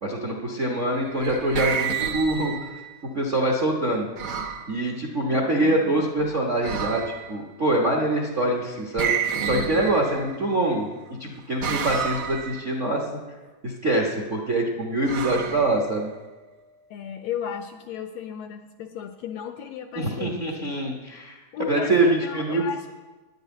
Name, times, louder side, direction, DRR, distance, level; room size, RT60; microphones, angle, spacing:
voice 1, 0.0-2.5 3.1-4.1 4.7-7.0 7.3-9.1 9.4-10.9 11.2-13.0 13.6-16.1 20.0-21.4 21.7-22.6, right 2 dB, 55° right, 0 dB, 0.8 m, -24 dB
sound 1, 0.9-2.9 4.2-4.7 6.6-7.4 9.0-10.4 11.6-12.6 15.0-16.2, right 6 dB, 80° right, 0.9 m, -30 dB
voice 2, 5.3-6.0 16.9-20.7 21.5-22.9, left 8 dB, 80° left, 7 dB, 1.6 m, -35 dB
10.5 x 6.6 x 9.1 m, 1.2 s
omnidirectional pair, 3.4 m